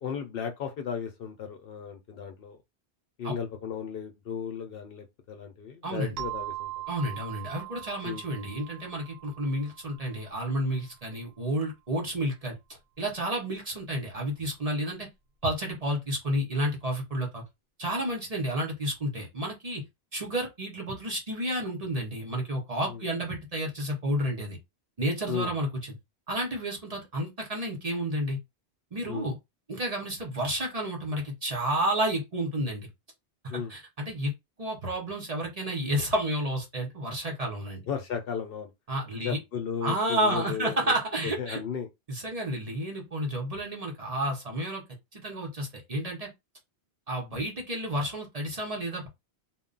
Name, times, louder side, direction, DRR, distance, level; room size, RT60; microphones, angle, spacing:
voice 1, 0.0-2.6 3.2-6.7 8.0-8.3 22.9-23.0 25.3-25.5 29.1-29.3 33.5-33.7 37.9-38.7 39.2-40.9 41.2-41.9, left 7 dB, 65° left, 0.7 m, -35 dB
voice 2, 5.8-6.1 6.9-12.6 13.0-15.1 15.4-17.4 17.8-19.8 20.1-24.6 25.0-25.9 26.3-28.4 28.9-29.4 29.7-32.9 33.5-34.3 34.6-37.8 38.9-39.4 39.8-41.6 42.1-44.8 45.1-46.3 47.1-49.1, right 1 dB, 40° right, 0.8 m, -31 dB
sound 1, 6.2-10.6, right 15 dB, 70° right, 0.8 m, -40 dB
2.2 x 2.1 x 3.7 m
omnidirectional pair, 1.1 m